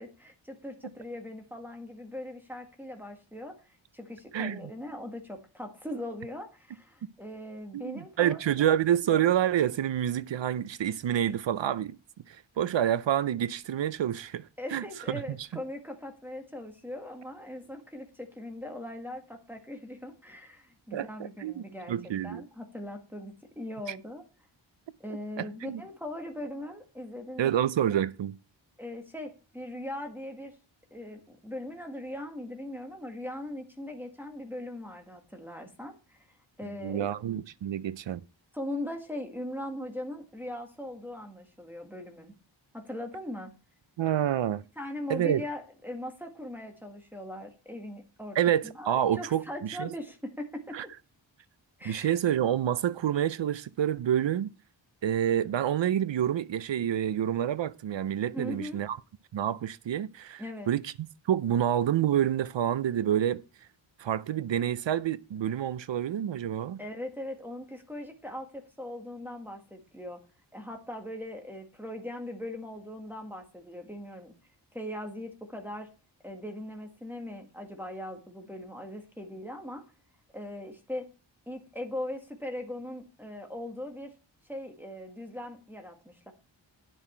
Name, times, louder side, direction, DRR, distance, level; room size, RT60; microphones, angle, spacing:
voice 1, 0.0-3.6 3.9-8.7 14.6-21.9 22.2-24.2 25.0-27.7 28.8-30.5 30.9-36.2 36.6-37.1 38.5-42.3 42.7-43.5 44.8-48.4 48.6-50.8 51.8-52.1 58.3-58.8 60.4-60.7 66.8-70.2 70.5-74.3 74.7-75.9 76.2-79.8 80.3-81.0 81.5-84.1 84.5-86.3, left 1 dB, 5° right, 1.8 m, -40 dB
voice 2, 4.3-4.7 7.7-12.0 12.3-14.4 14.7-15.2 20.9-22.4 25.4-25.8 27.4-28.3 36.8-38.2 44.0-44.6 45.1-45.4 48.4-49.9 50.7-50.9 51.8-54.5 55.0-59.0 59.3-60.9 61.3-63.4 64.0-66.8, right 10 dB, 70° right, 0.6 m, -28 dB
10.5 x 7.5 x 4.4 m
wide cardioid pair, 90°, 46 cm